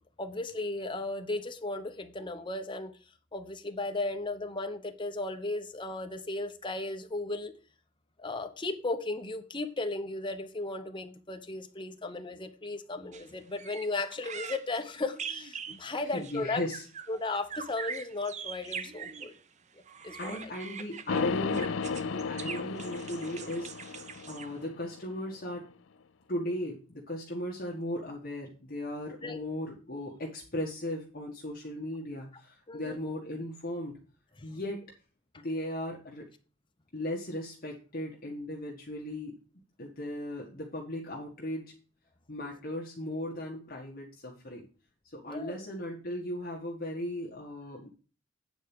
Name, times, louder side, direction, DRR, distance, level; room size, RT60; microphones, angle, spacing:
voice 1, 0.2-3.0 3.3-7.5 8.2-16.6 17.1-19.3 20.0-20.5 29.2-29.4 32.7-33.0 34.4-34.6 35.3-35.4 45.2-45.6, left 2 dB, 25° left, 1.0 m, -35 dB
sound 1, 13.1-13.3 13.6-19.4 19.9-24.7, right 6 dB, 40° right, 0.7 m, -42 dB
voice 2, 15.9-16.8 20.2-25.7 26.3-34.0 34.4-34.8 35.4-36.2 36.9-39.4 39.8-41.7 42.3-44.7 45.0-47.9, left 1 dB, 50° left, 1.6 m, -37 dB
sound 2, 21.1-25.2, left 5 dB, 80° left, 0.4 m, -34 dB
9.0 x 4.5 x 7.0 m
head